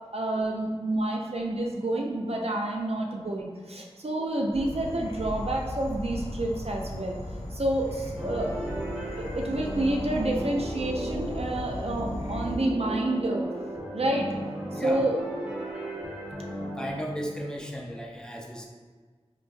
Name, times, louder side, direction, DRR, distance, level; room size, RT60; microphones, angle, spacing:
voice 1, 0.1-7.2 7.5-8.5 9.2-13.5 13.9-14.3 14.7-15.2, right 1 dB, 65° right, 0 dB, 0.4 m, -29 dB
Insect / Frog, 4.5-12.6, left 1 dB, 80° left, 0.4 m, -37 dB
sound 1, 8.2-16.9, right 1 dB, 10° right, 1.0 m, -36 dB
voice 2, 16.8-18.7, equal, 5° left, 0 dB, 0.5 m, -35 dB
4.6 x 2.2 x 2.5 m, 1.5 s
wide cardioid pair, 40°, 11 cm